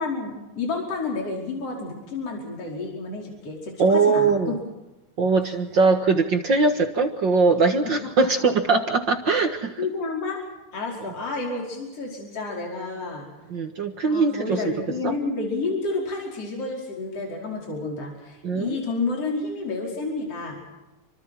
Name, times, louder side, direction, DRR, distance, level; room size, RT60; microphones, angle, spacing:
voice 1, 0.0-4.5 9.8-10.4 10.7-13.3 14.1-20.6, left 3 dB, 45° left, -1 dB, 5.9 m, -30 dB
voice 2, 3.8-4.5 5.2-9.8 13.5-14.6 15.0-15.1 18.4-18.8, right 4 dB, 45° right, 5 dB, 1.7 m, -21 dB
28.5 x 25.0 x 4.5 m, 1.0 s
omnidirectional pair, 3.8 m